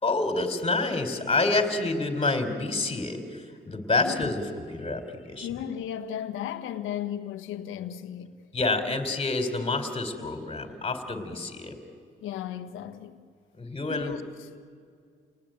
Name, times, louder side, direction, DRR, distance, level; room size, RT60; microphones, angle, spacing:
voice 1, 0.0-5.5 8.5-11.8 13.6-14.2, left 3 dB, 30° left, 3.9 m, -28 dB
voice 2, 4.0-4.4 5.4-8.4 11.2-11.3 12.2-13.2 13.9-14.6, left 10 dB, 90° left, 1.5 m, -35 dB
29.5 x 19.5 x 9.0 m
cardioid pair, 90°, 20 cm